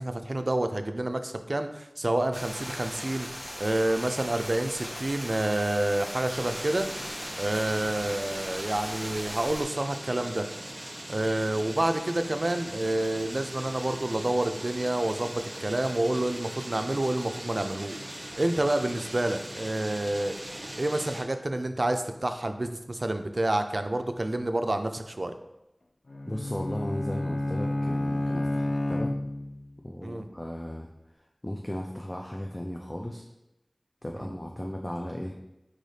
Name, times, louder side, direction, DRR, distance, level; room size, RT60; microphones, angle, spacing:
voice 1, 0.0-3.3 3.6-6.9 7.4-10.4 11.1-18.0 18.4-20.3 20.8-25.3 30.0-30.3 34.2-34.3, right 1 dB, 60° right, 8 dB, 0.4 m, -28 dB
sound 1, 2.3-9.6, equal, 40° left, 1.3 m, -39 dB
sound 2, 6.3-21.2, right 1 dB, 45° right, 0.7 m, -40 dB
Bowed string instrument, 26.1-29.7, left 1 dB, 90° left, 0.3 m, -30 dB
voice 2, 26.3-29.1 29.8-30.9 31.4-33.2 34.0-35.4, left 1 dB, 25° left, 1 dB, 0.4 m, -36 dB
4.9 x 3.9 x 2.7 m, 0.91 s
wide cardioid pair, 45°, 0 cm